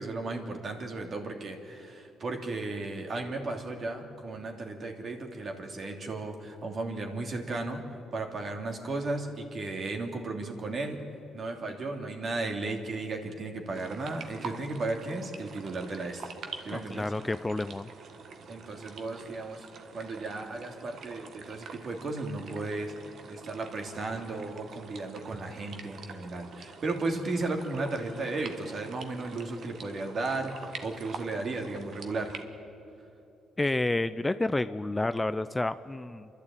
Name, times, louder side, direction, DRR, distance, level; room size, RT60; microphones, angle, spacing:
voice 1, 0.0-7.8 8.1-11.0 11.3-16.3 16.6-17.1 18.5-19.7 19.9-22.9 23.3-32.4, right 3 dB, 45° right, 3 dB, 2.8 m, -35 dB
sound 1, 13.7-32.4, right 5 dB, 65° right, 1.5 m, -46 dB
voice 2, 16.7-17.9 33.6-36.3, left 2 dB, 15° left, 12 dB, 0.5 m, -30 dB
28.5 x 12.0 x 8.9 m, 2.9 s
cardioid pair, 90°, 0 cm